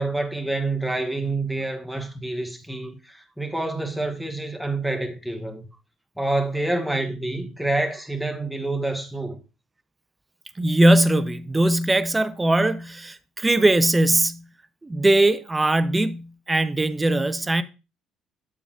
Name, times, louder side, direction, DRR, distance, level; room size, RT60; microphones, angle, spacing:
voice 1, 0.0-5.6 6.2-9.4, right 2 dB, 5° left, 1.1 m, -27 dB
voice 2, 10.6-14.4 14.8-17.6, right 1 dB, 20° right, 0.6 m, -20 dB
8.3 x 7.0 x 2.4 m
figure-of-eight pair, 50°, 0 cm